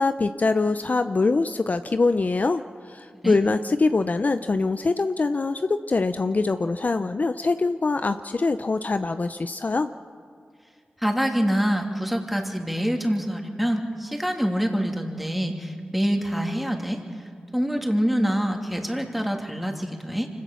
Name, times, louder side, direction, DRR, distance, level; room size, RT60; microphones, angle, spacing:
voice 1, 0.0-2.6 2.9-9.9, left 3 dB, 45° left, 10 dB, 0.6 m, -23 dB
voice 2, 11.0-17.0 17.5-20.3, equal, 5° right, 2 dB, 3.0 m, -25 dB
25.0 x 17.0 x 7.0 m, 2.2 s
cardioid pair, 45°, 4 cm